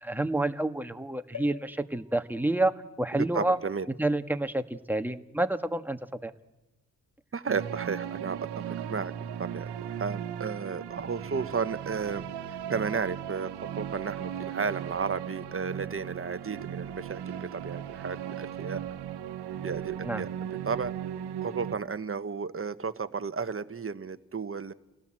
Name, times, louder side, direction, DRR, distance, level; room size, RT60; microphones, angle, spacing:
voice 1, 0.0-2.7 3.0-3.6 4.0-6.3 20.0-20.2, right 2 dB, 5° right, 8 dB, 1.7 m, -28 dB
sound 1, 1.3-5.0 5.6-5.7 5.9-6.0, left 8 dB, 50° left, 2.4 m, -50 dB
voice 2, 3.1-3.9 7.3-9.1 9.4-12.2 12.7-18.8 19.6-20.9 21.4-24.7, right 5 dB, 35° right, 11 dB, 1.3 m, -33 dB
sound 2, 7.5-21.7, right 9 dB, 80° right, 1.3 m, -37 dB
29.5 x 18.0 x 7.8 m, 1.1 s
hypercardioid pair, 40°, 40 cm